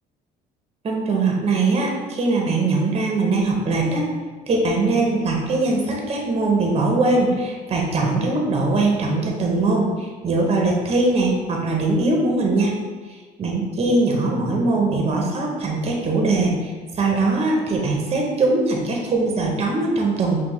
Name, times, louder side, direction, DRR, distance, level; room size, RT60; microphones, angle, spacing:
voice 1, 0.8-4.1 4.5-12.7 13.1-20.5, right 3 dB, 35° right, -1 dB, 0.8 m, -21 dB
5.7 x 2.3 x 3.1 m, 1.4 s
cardioid pair, 110°, 17 cm